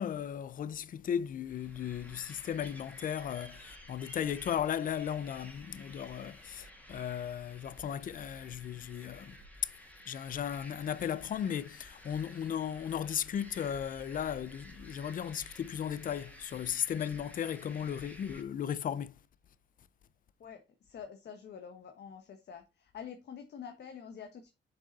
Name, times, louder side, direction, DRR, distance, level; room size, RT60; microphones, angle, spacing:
voice 1, 0.0-9.4 10.1-19.1, left 9 dB, 45° left, 0.5 m, -36 dB
sound 1, 1.5-18.4, equal, 5° left, 1.9 m, -52 dB
voice 2, 20.4-24.5, left 7 dB, 60° left, 1.2 m, -47 dB
7.5 x 5.2 x 4.0 m
cardioid pair, 125°, 20 cm